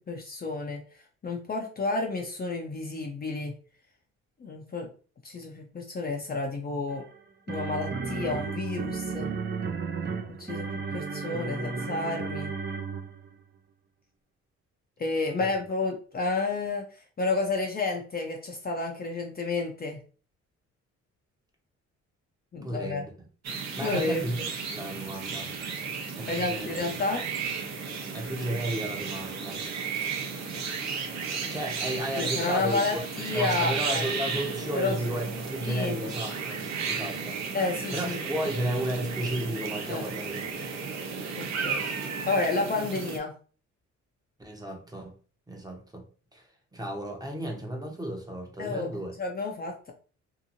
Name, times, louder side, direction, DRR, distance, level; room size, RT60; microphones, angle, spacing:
voice 1, 0.1-0.8 1.2-3.5 4.4-4.9 5.2-7.0 7.5-9.3 10.3-12.5 15.0-20.0 22.5-23.0 23.8-24.2 26.3-27.3 32.2-34.0 34.8-35.0 35.7-36.0 37.5-38.2 39.9-40.0 41.4-41.9 42.3-43.3 48.6-48.9 49.2-49.9, left 3 dB, 30° left, 0.6 m, -30 dB
sound 1, 6.9-13.3, right 4 dB, 35° right, 0.5 m, -33 dB
voice 2, 22.6-23.1 23.8-24.4 24.7-25.5 26.2-27.0 28.1-29.6 31.5-33.0 33.3-36.6 36.9-37.4 37.9-40.6 44.4-45.1 45.5-46.0 46.3-46.4 46.7-49.1, right 1 dB, 10° right, 0.8 m, -33 dB
sound 2, 23.4-43.2, right 5 dB, 60° right, 0.8 m, -34 dB
2.8 x 2.6 x 2.6 m
cardioid pair, 90°, 30 cm